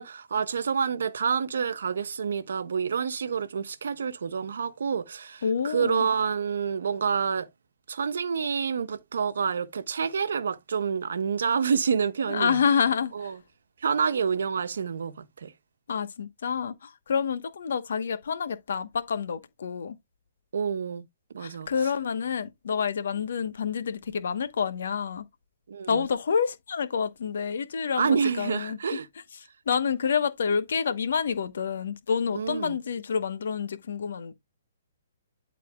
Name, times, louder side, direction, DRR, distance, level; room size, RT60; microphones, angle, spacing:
voice 1, 0.0-7.5 7.9-12.6 13.1-13.4 13.8-15.5 20.5-21.0 21.3-21.7 25.7-26.0 28.0-29.1 32.3-32.8, right 6 dB, 80° right, 1.0 m, -28 dB
voice 2, 5.4-6.1 12.3-13.3 15.9-20.0 21.4-25.2 25.9-29.0 29.7-34.3, left 6 dB, 70° left, 1.1 m, -28 dB
12.0 x 4.1 x 2.3 m
hypercardioid pair, 155°, 0 cm